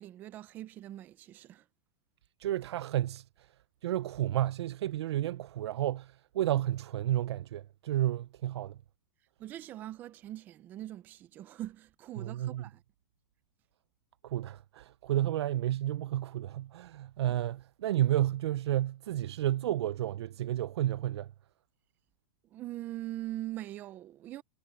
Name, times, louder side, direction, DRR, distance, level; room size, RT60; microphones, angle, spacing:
voice 1, 0.0-1.7 9.4-12.8 22.5-24.4, right 14 dB, 15° right, 0.4 m, -42 dB
voice 2, 2.4-3.2 3.8-8.8 12.2-12.6 14.2-21.3, right 13 dB, 75° right, 0.4 m, -31 dB
supercardioid pair, 180°, 14 cm